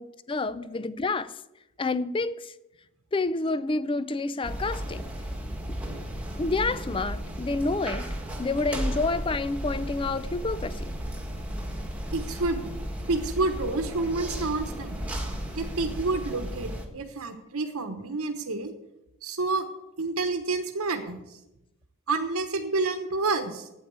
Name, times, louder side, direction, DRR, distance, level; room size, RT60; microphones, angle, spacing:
voice 1, 0.0-1.4 1.8-2.5 3.1-5.1 6.4-8.1 8.4-10.9, left 3 dB, 25° left, 16 dB, 0.4 m, -29 dB
sound 1, 4.4-16.9, equal, 5° right, 1.5 m, -34 dB
voice 2, 12.1-12.7 13.1-15.0 15.6-18.7 19.2-19.7 20.0-21.4 22.1-23.7, right 3 dB, 75° right, 5 dB, 1.1 m, -29 dB
8.8 x 8.6 x 8.4 m, 0.92 s
head